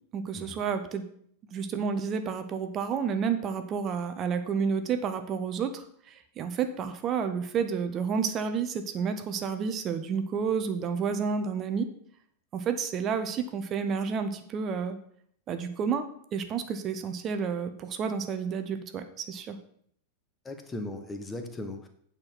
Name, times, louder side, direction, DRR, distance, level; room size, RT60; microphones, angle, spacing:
voice 1, 0.1-1.1 1.5-11.9 12.5-15.0 15.5-16.1 16.3-19.6, right 6 dB, 30° right, 9 dB, 0.7 m, -30 dB
voice 2, 20.4-21.9, left 2 dB, 15° left, 6 dB, 1.2 m, -38 dB
8.7 x 4.5 x 6.0 m, 0.65 s
figure-of-eight pair, 90°, 0 cm